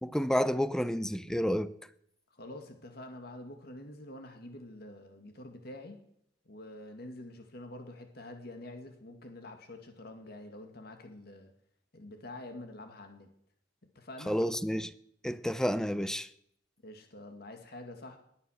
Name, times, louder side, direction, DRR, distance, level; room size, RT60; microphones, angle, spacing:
voice 1, 0.0-1.7 14.3-14.9 15.2-16.3, equal, 5° left, 0.6 m, -30 dB
voice 2, 2.3-6.0 6.5-11.5 11.9-13.3 14.0-14.4 16.8-18.2, left 1 dB, 60° left, 2.0 m, -47 dB
20.5 x 9.5 x 6.4 m
head